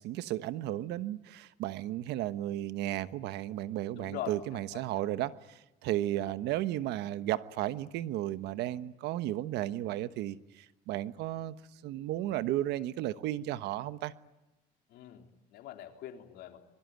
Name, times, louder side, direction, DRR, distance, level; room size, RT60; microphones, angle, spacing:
voice 1, 0.0-11.5 11.8-14.1, right 14 dB, 85° right, 1.2 m, -34 dB
voice 2, 3.9-5.1 14.9-16.6, left 11 dB, 80° left, 3.7 m, -43 dB
26.5 x 22.5 x 9.4 m
cardioid pair, 110°, 17 cm